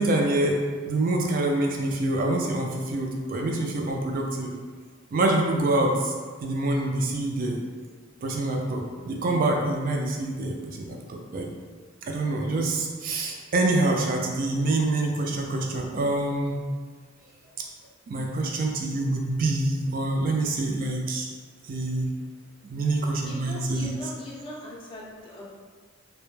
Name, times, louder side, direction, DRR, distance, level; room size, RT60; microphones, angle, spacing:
voice 1, 0.0-4.5 5.1-6.1 6.4-7.6 8.2-11.5 12.0-16.6 18.1-21.3 21.6-22.1 22.7-23.9, right 2 dB, 45° right, 1 dB, 0.3 m, -26 dB
voice 2, 23.2-25.5, left 1 dB, 25° left, -5 dB, 0.5 m, -40 dB
2.1 x 2.0 x 3.0 m, 1.5 s
head